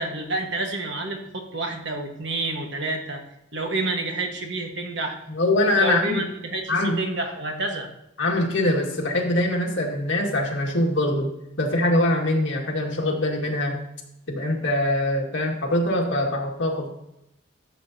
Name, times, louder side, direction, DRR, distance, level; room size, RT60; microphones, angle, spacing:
voice 1, 0.0-3.2 3.5-5.2 5.8-7.9, right 2 dB, 60° right, 2 dB, 1.5 m, -29 dB
voice 2, 5.3-6.2 6.7-7.0 8.2-11.3 11.6-13.8 14.3-16.9, left 1 dB, 65° left, -1 dB, 2.0 m, -23 dB
13.0 x 7.2 x 2.9 m, 0.84 s
head